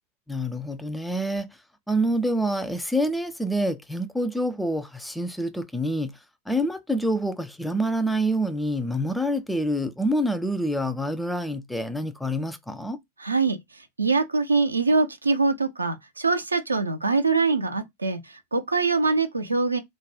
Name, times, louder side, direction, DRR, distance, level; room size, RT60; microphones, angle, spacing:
voice 1, 0.3-1.5 1.9-6.1 6.5-13.0, equal, 5° left, 0.4 m, -26 dB
voice 2, 13.2-19.8, right 3 dB, 80° right, 0.5 m, -24 dB
2.5 x 2.1 x 3.3 m
figure-of-eight pair, 90°, 0 cm